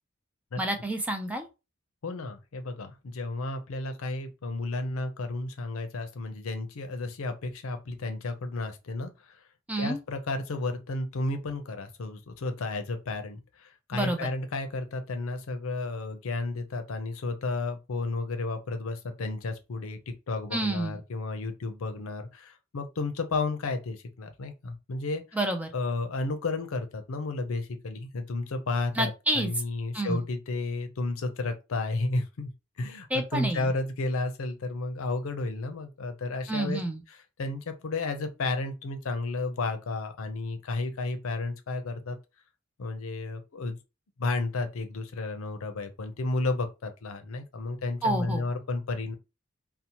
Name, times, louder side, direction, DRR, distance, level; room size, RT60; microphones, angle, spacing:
voice 1, 0.6-1.5 9.7-10.0 13.9-14.3 20.5-21.0 25.3-25.7 29.0-29.5 29.9-30.2 33.1-33.7 36.5-37.0 48.0-48.5, right 1 dB, 5° right, 0.3 m, -29 dB
voice 2, 2.0-9.4 9.8-25.2 25.7-32.5 32.8-33.1 33.3-36.8 37.4-42.2 42.8-43.8 44.2-49.1, left 3 dB, 85° left, 0.5 m, -32 dB
2.7 x 2.0 x 2.8 m
head